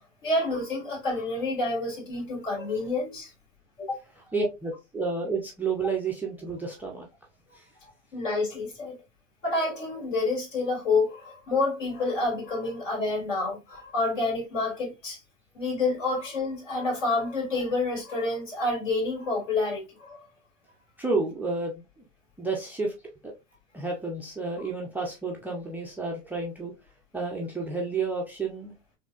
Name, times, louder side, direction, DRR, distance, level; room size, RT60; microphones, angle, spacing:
voice 1, 0.2-3.3 3.8-4.0 8.1-8.9 9.4-15.2 15.5-20.3 24.6-24.7, left 3 dB, 75° left, 2.4 m, -28 dB
voice 2, 4.3-7.1 7.6-7.7 21.0-21.8 22.4-22.9 23.2-23.3 23.7-26.7 27.1-28.7, right 3 dB, 5° right, 0.3 m, -30 dB
4.3 x 2.8 x 2.4 m
hypercardioid pair, 95°, 39 cm